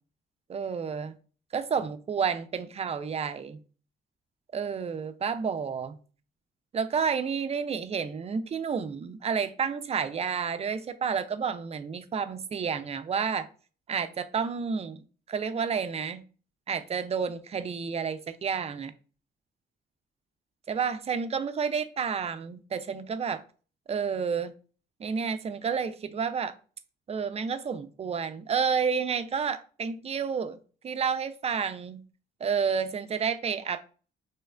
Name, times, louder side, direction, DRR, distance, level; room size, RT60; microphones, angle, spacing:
voice 1, 0.5-1.1 1.5-3.6 4.5-6.0 6.7-13.5 13.9-16.2 16.7-18.9 20.7-23.4 23.9-24.5 25.0-26.5 27.1-30.6 30.8-32.0 32.4-33.8, right 6 dB, 30° right, 0.4 m, -30 dB
3.1 x 2.3 x 3.2 m
cardioid pair, 90°, 20 cm